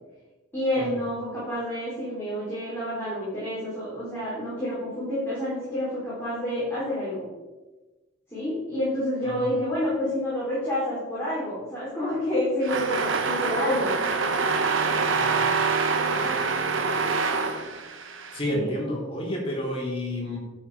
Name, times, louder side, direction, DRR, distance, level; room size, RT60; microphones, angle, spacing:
voice 1, 0.5-7.3 8.3-13.9 18.5-18.7, left 1 dB, 10° left, -10 dB, 3.5 m, -28 dB
sound 1, 12.6-18.4, right 4 dB, 85° right, 1.0 m, -25 dB
voice 2, 15.1-15.5 18.3-20.4, left 1 dB, 30° left, -2 dB, 2.7 m, -31 dB
11.0 x 6.2 x 4.7 m, 1.2 s
head